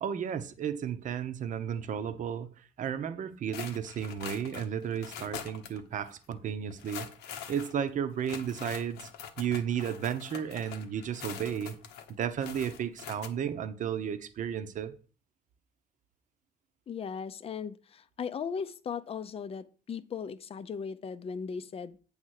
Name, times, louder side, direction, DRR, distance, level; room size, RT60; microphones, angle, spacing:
voice 1, 0.0-7.1 7.5-9.1 9.4-11.8 12.2-14.9, right 8 dB, 50° right, 0.8 m, -33 dB
sound 1, 3.5-5.8 6.1-6.2 6.7-13.3, left 9 dB, 90° left, 1.0 m, -44 dB
voice 2, 16.9-22.0, left 6 dB, 35° left, 0.6 m, -37 dB
8.8 x 3.6 x 6.4 m
cardioid pair, 110°, 17 cm